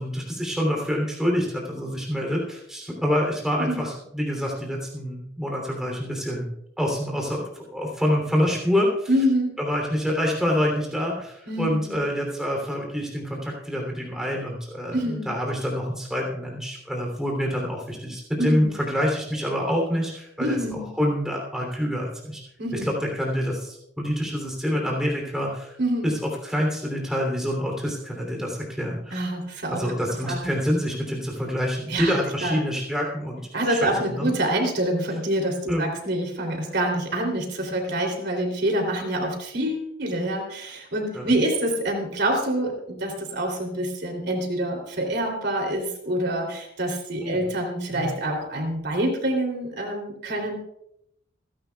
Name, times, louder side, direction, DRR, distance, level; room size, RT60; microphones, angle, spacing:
voice 1, 0.0-6.5 6.8-9.1 9.6-22.4 22.7-25.8 26.0-29.2 29.7-33.4 33.7-34.3 35.7-35.8 41.1-41.3 47.2-47.4 47.9-48.1, equal, 5° right, 0 dB, 3.1 m, -26 dB
voice 2, 9.1-9.5 11.5-12.0 14.9-15.3 18.4-18.7 20.4-20.8 22.6-22.9 25.8-26.1 29.1-30.5 31.9-32.6 33.5-50.5, right 1 dB, 60° right, 2 dB, 3.1 m, -26 dB
27.5 x 11.5 x 2.3 m, 0.78 s
head